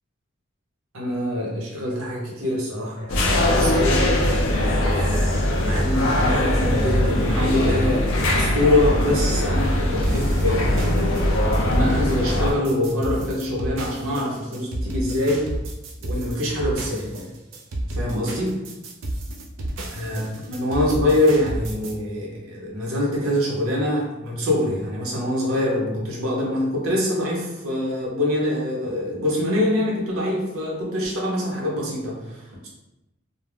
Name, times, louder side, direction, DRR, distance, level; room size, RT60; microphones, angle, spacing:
voice 1, 0.9-4.2 4.9-11.1 11.6-15.5 16.0-17.2 17.9-18.6 19.9-32.7, left 1 dB, 90° right, -3 dB, 0.8 m, -24 dB
sound 1, 3.1-12.5, left 1 dB, 80° left, 0.5 m, -21 dB
sound 2, 10.0-21.9, right 1 dB, 65° right, 0.5 m, -31 dB
2.4 x 2.1 x 3.2 m, 0.97 s
head